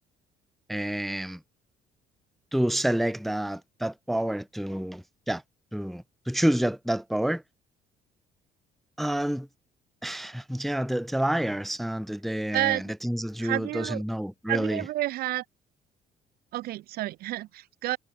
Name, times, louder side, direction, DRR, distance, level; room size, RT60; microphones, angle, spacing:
voice 1, 0.7-1.4 2.5-5.4 5.7-7.4 9.0-9.5 10.0-14.8, right 1 dB, ahead, 0.3 m, -28 dB
voice 2, 13.4-14.0 14.5-15.4 16.5-18.0, right 16 dB, 65° right, 0.5 m, -30 dB
cardioid pair, 110°, 17 cm